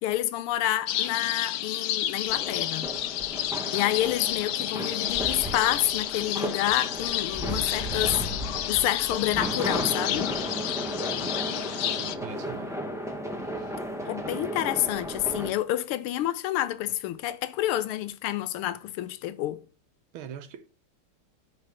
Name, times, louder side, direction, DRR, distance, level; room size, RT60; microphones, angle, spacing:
voice 1, 0.0-2.9 3.7-8.2 8.7-10.3 14.1-19.6, left 13 dB, 90° left, 1.5 m, -28 dB
sound 1, 0.9-12.2, left 12 dB, 75° left, 1.4 m, -30 dB
sound 2, 2.3-15.5, equal, 5° right, 0.6 m, -34 dB
voice 2, 11.4-12.8 13.5-13.8 20.1-20.8, right 9 dB, 75° right, 1.6 m, -42 dB
9.4 x 4.7 x 6.3 m
omnidirectional pair, 2.4 m